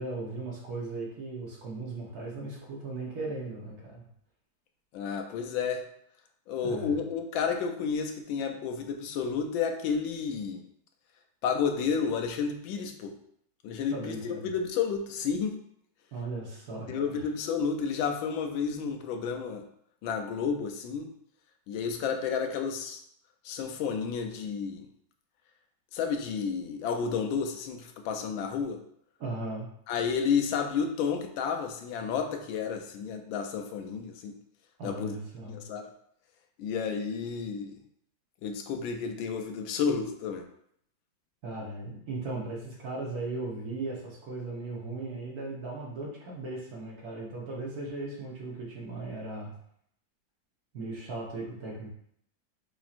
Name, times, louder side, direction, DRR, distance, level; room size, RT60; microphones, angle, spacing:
voice 1, 0.0-4.0 6.6-7.0 13.9-14.5 16.1-17.3 29.2-29.7 34.8-35.6 41.4-49.5 50.7-51.9, right 2 dB, 55° right, -3 dB, 1.5 m, -37 dB
voice 2, 4.9-5.8 6.5-10.6 11.4-13.2 13.6-15.6 16.9-19.6 20.0-21.1 21.7-23.0 23.4-24.9 25.9-28.8 29.9-34.4 34.8-35.2 35.5-35.8 36.6-37.8 38.4-40.5, left 6 dB, 80° left, 5 dB, 1.3 m, -31 dB
7.0 x 2.9 x 2.5 m, 0.69 s
omnidirectional pair, 2.1 m